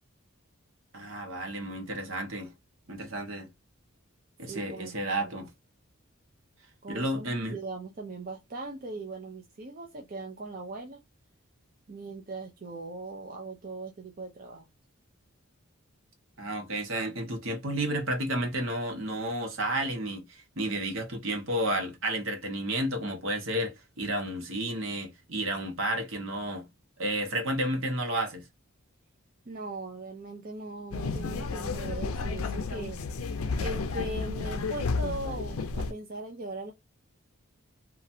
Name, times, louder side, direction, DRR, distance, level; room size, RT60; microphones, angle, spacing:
voice 1, 0.9-2.5 2.9-3.5 4.4-5.5 6.9-7.6 16.4-26.7 27.0-28.4, right 1 dB, 65° right, 1.1 m, -31 dB
voice 2, 4.5-5.4 6.8-11.0 11.9-14.7 29.5-36.7, right 2 dB, 40° right, 0.5 m, -40 dB
sound 1, 30.9-35.9, left 4 dB, 75° left, 0.5 m, -32 dB
2.9 x 2.4 x 2.6 m
head